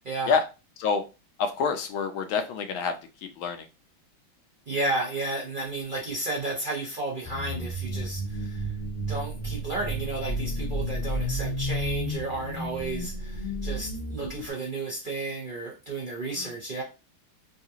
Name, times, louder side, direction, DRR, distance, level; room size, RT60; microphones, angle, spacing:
voice 1, 0.0-0.4 4.7-8.6 9.1-16.8, right 2 dB, 70° right, -4 dB, 0.4 m, -32 dB
voice 2, 1.4-2.9 3.4-3.6 16.4-16.5, left 5 dB, 85° left, 7 dB, 1.4 m, -27 dB
sound 1, 7.2-14.5, equal, 20° left, 1.1 m, -32 dB
3.7 x 2.4 x 2.7 m, 0.29 s
omnidirectional pair, 2.2 m